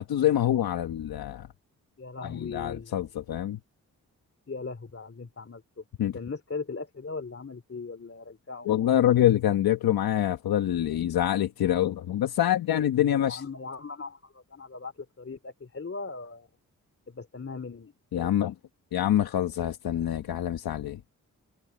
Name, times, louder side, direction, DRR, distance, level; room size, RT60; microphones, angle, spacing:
voice 1, 0.0-1.5 2.2-3.6 6.0-6.2 8.7-13.4 18.1-18.5 18.9-21.0, left 11 dB, 85° left, 1.1 m, -25 dB
voice 2, 2.0-3.0 4.5-8.7 13.3-16.5 17.1-18.3, left 4 dB, 40° left, 3.1 m, -39 dB
cardioid pair, 55°, 35 cm